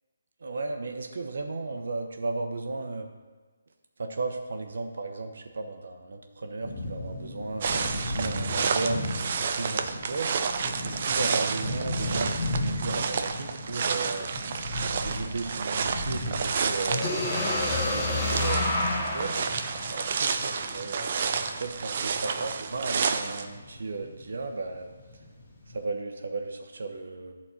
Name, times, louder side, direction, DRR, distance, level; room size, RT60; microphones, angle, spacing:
voice 1, 0.4-3.1 4.0-9.1 9.5-10.4 10.8-14.3 15.0-17.2 17.8-19.4 19.9-21.1 21.6-24.9 25.7-27.3, right 3 dB, 65° right, 5 dB, 0.9 m, -35 dB
sound 1, 6.6-25.8, left 1 dB, 30° left, 2.0 m, -37 dB
sound 2, 7.6-23.5, right 5 dB, 35° right, 0.4 m, -30 dB
sound 3, 17.0-20.9, left 2 dB, 10° left, 0.9 m, -29 dB
11.5 x 4.3 x 6.4 m, 1.3 s
hypercardioid pair, 175°, 0 cm